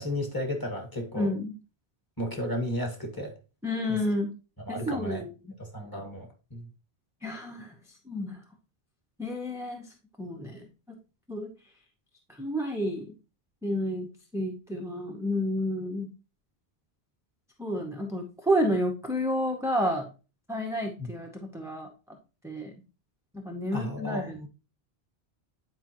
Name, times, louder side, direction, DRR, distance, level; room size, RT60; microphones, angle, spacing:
voice 1, 0.0-1.3 2.2-3.4 3.9-4.0 4.7-5.2 5.6-6.7 21.0-21.1 23.7-24.5, left 1 dB, 20° left, 2 dB, 1.8 m, -33 dB
voice 2, 1.2-1.5 3.6-4.3 4.7-5.3 7.2-7.7 8.1-8.4 9.2-9.9 10.2-11.0 11.3-11.5 12.4-13.1 13.6-16.1 17.6-20.1 20.5-21.9 22.4-22.7 23.3-24.5, equal, 5° right, 1 dB, 0.8 m, -30 dB
9.8 x 4.7 x 3.0 m, 0.32 s
omnidirectional pair, 1.1 m